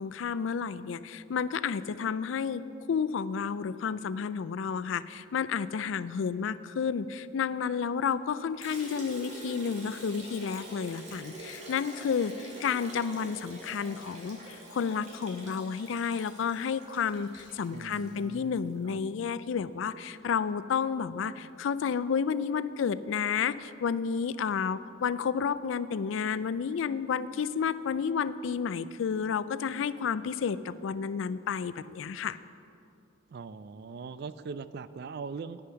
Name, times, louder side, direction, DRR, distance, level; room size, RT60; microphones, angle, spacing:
voice 1, 0.0-2.6 2.9-32.4, left 6 dB, 75° left, 16 dB, 0.4 m, -31 dB
Liquid, 8.6-18.7, right 1 dB, 35° right, 2.1 m, -46 dB
voice 2, 17.7-19.0 33.3-35.6, right 5 dB, 55° right, 15 dB, 0.3 m, -41 dB
9.9 x 9.7 x 5.7 m, 2.6 s
head